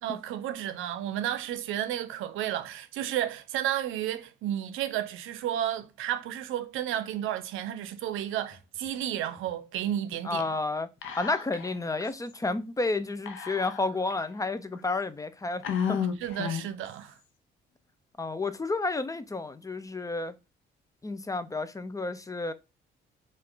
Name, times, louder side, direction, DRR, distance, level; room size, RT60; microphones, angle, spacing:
voice 1, 0.0-10.5 16.2-17.2, right 11 dB, 90° right, 0.6 m, -32 dB
voice 2, 10.2-10.9 11.2-15.6 15.9-16.0 18.2-20.3 21.0-22.5, left 3 dB, 15° left, 0.4 m, -31 dB
Whispering, 11.0-11.7 12.0-12.1 13.3-14.1 14.7-14.8 15.6-16.8, left 8 dB, 85° left, 0.7 m, -32 dB
4.5 x 2.4 x 3.8 m
cardioid pair, 90°, 20 cm